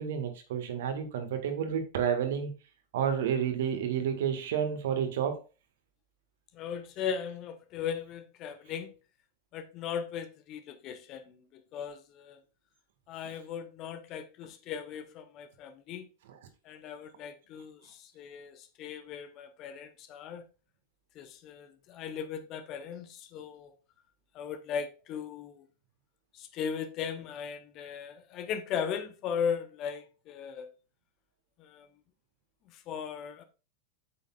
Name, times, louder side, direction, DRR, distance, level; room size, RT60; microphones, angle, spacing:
voice 1, 0.0-2.5 2.9-5.4 16.3-16.4, right 8 dB, 55° right, 1.8 m, -30 dB
voice 2, 6.5-8.9 9.5-12.4 13.1-16.1 16.6-20.4 21.1-23.7 24.3-25.7 26.3-30.7 31.6-31.9 32.7-33.4, left 7 dB, 35° left, 1.1 m, -38 dB
8.6 x 7.6 x 2.5 m
figure-of-eight pair, 90°, 0 cm